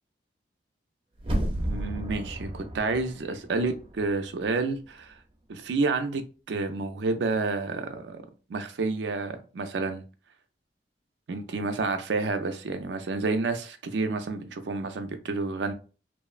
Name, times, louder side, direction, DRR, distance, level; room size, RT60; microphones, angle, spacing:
sound 1, 1.2-4.1 4.5-4.6, right 1 dB, 30° right, 0.5 m, -32 dB
voice 1, 1.5-5.2 5.5-8.2 8.5-10.0 11.3-15.7, right 3 dB, 90° right, 0.4 m, -29 dB
2.9 x 2.0 x 2.4 m
head